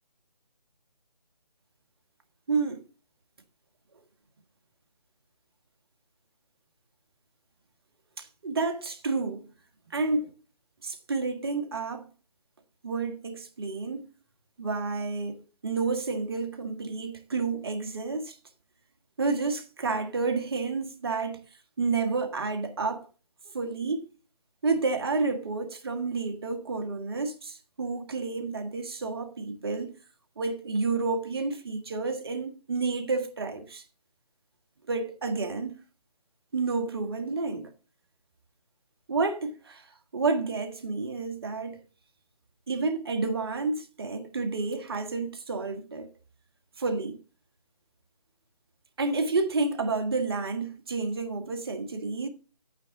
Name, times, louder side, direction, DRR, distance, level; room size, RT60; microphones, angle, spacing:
voice 1, 2.5-2.8 8.2-9.5 9.9-10.3 10.8-12.1 12.8-14.1 14.6-18.4 19.2-21.4 21.8-23.1 23.5-24.1 24.6-30.0 30.4-33.8 34.9-35.7 36.5-37.7 39.1-41.8 42.7-46.1 46.8-47.2 49.0-52.3, right 3 dB, 35° right, 1.7 m, -30 dB
11.0 x 9.1 x 3.8 m
figure-of-eight pair, 155°, 20 cm